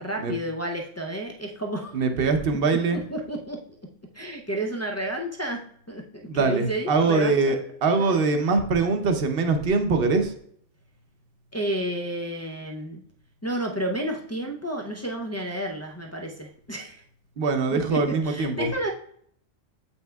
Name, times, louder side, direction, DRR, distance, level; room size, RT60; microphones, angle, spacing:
voice 1, 0.0-2.0 2.9-3.6 4.1-5.6 5.9-7.5 11.5-13.0 13.4-17.0 17.7-18.9, right 1 dB, 25° left, 0 dB, 0.3 m, -31 dB
voice 2, 1.9-3.0 6.3-10.3 17.4-18.7, right 4 dB, 60° right, 7 dB, 0.9 m, -23 dB
7.7 x 5.4 x 2.3 m, 0.63 s
omnidirectional pair, 1.2 m